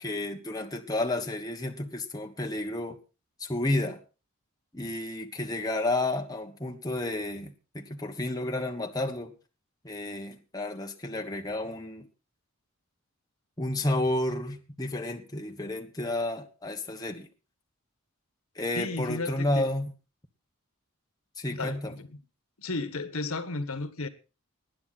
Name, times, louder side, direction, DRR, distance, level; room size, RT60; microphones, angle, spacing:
voice 1, 0.0-3.0 3.4-4.0 4.7-9.3 9.8-12.1 13.6-17.3 18.5-19.9 21.4-22.0, left 1 dB, 15° left, 1.3 m, -31 dB
voice 2, 18.7-19.7 21.5-22.2 22.6-24.1, left 3 dB, 75° left, 1.6 m, -34 dB
19.5 x 9.9 x 4.2 m
head